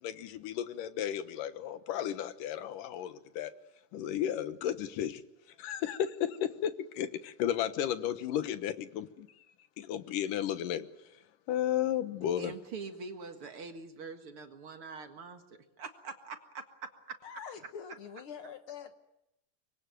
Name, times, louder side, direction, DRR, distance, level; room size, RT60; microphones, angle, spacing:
voice 1, 0.0-3.5 3.9-5.2 5.6-9.3 9.8-10.9 11.5-12.5, left 10 dB, 85° left, 12 dB, 2.8 m, -33 dB
voice 2, 12.2-15.4 15.8-16.9, right 4 dB, 45° right, 6 dB, 2.3 m, -44 dB
voice 3, 17.2-18.9, left 7 dB, 55° left, 9 dB, 1.6 m, -45 dB
25.0 x 22.0 x 9.3 m, 0.87 s
omnidirectional pair, 3.7 m